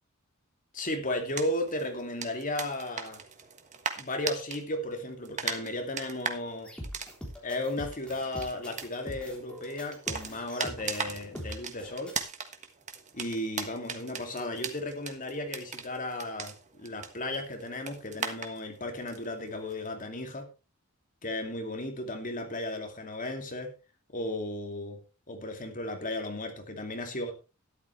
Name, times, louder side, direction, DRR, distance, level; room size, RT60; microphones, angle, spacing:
voice 1, 0.7-3.2 4.0-6.7 7.4-12.1 13.1-20.5 21.2-23.7 24.1-25.0 25.3-27.3, left 1 dB, 40° left, 4 dB, 2.5 m, -35 dB
sound 1, 1.2-4.6 4.9-19.9, right 6 dB, 35° right, 1.4 m, -40 dB
sound 2, 6.7-12.1, equal, 5° left, 3.5 m, -43 dB
13.0 x 11.5 x 3.3 m, 0.30 s
head